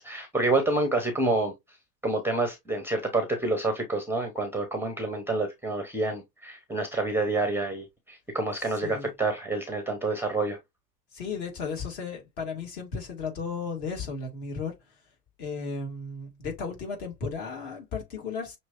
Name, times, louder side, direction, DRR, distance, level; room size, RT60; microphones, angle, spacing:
voice 1, 0.0-1.5 2.0-10.6, right 2 dB, 5° right, 0.6 m, -28 dB
voice 2, 11.1-15.0 15.4-18.6, left 5 dB, 50° left, 2.2 m, -35 dB
6.0 x 2.8 x 2.5 m
figure-of-eight pair, 85°, 47 cm